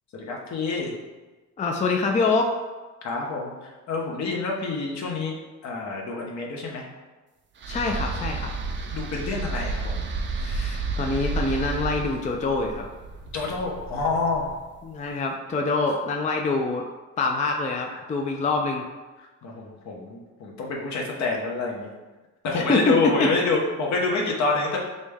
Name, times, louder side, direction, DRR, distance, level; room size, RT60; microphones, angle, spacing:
voice 1, 0.1-0.9 3.0-5.4 5.6-6.9 8.9-10.1 13.3-14.5 15.1-15.2 17.9-18.0 19.4-21.9 22.4-24.8, left 3 dB, 65° left, -1 dB, 0.9 m, -27 dB
voice 2, 1.6-2.5 7.7-8.5 10.3-12.9 14.8-16.8 17.2-18.8 22.5-23.3, left 3 dB, 25° left, 2 dB, 0.4 m, -25 dB
sound 1, 7.6-14.8, right 3 dB, 40° right, 0.5 m, -31 dB
5.2 x 2.1 x 3.4 m, 1.2 s
cardioid pair, 90°, 30 cm